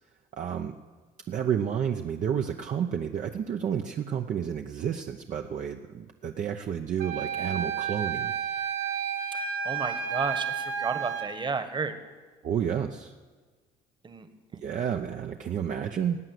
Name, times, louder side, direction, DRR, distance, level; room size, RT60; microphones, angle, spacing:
voice 1, 0.3-0.7 1.3-8.4 12.4-13.1 14.6-16.2, right 8 dB, 50° right, 4 dB, 0.8 m, -30 dB
Wind instrument woodwind instrument, 7.0-11.3, right 7 dB, 90° right, 1.6 m, -31 dB
voice 2, 9.3-11.9 14.0-14.3 14.5-14.6, right 4 dB, 30° right, 9 dB, 1.5 m, -33 dB
18.0 x 8.0 x 9.5 m, 1.4 s
cardioid pair, 110°, 17 cm